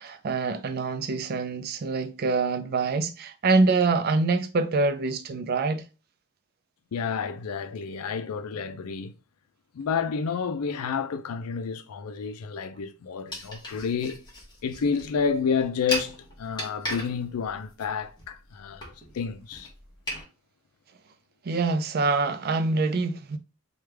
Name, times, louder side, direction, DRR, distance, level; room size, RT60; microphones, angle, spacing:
voice 1, 0.0-5.9 21.4-23.4, right 3 dB, 45° right, 0.4 m, -25 dB
voice 2, 6.9-9.1 9.7-14.2 14.6-19.7, left 6 dB, 85° left, 0.4 m, -30 dB
sound 1, 13.3-20.2, left 1 dB, 20° left, 1.0 m, -37 dB
3.2 x 2.3 x 3.2 m
head